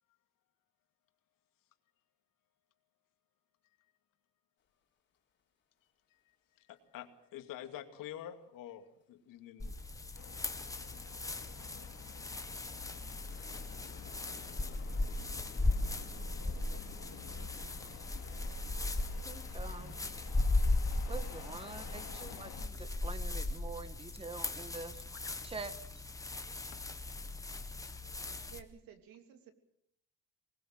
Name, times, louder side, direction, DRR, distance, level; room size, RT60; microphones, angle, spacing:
voice 1, 6.6-9.7 14.4-14.5 25.2-25.3, left 11 dB, 65° left, 7 dB, 2.4 m, -47 dB
sound 1, 9.6-28.6, left 2 dB, 10° left, 1.3 m, -37 dB
sound 2, 10.1-22.7, left 11 dB, 85° left, 3.4 m, -53 dB
sound 3, 12.9-19.2, left 5 dB, 30° left, 3.9 m, -56 dB
voice 2, 15.6-17.6 18.2-18.9 28.5-29.5, right 8 dB, 70° right, 8 dB, 3.0 m, -58 dB
voice 3, 19.2-20.1 21.1-25.0 25.4-25.7, right 4 dB, 15° right, 12 dB, 1.5 m, -45 dB
23.5 x 20.0 x 7.6 m, 0.73 s
cardioid pair, 165°, 35 cm